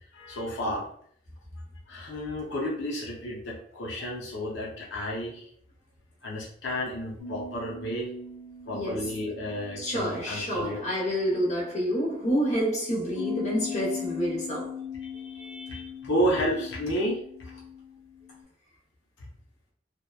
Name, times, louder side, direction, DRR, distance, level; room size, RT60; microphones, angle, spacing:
voice 1, 0.1-0.9 1.9-5.5 6.2-8.1 8.7-10.8 15.0-17.2 19.2-19.3, equal, 85° left, 0.6 m, -31 dB
sound 1, 7.2-11.8 13.1-18.4, left 6 dB, ahead, 1.0 m, -40 dB
voice 2, 8.7-9.1 9.8-14.7, equal, 40° left, 0.8 m, -28 dB
2.7 x 2.0 x 2.2 m
head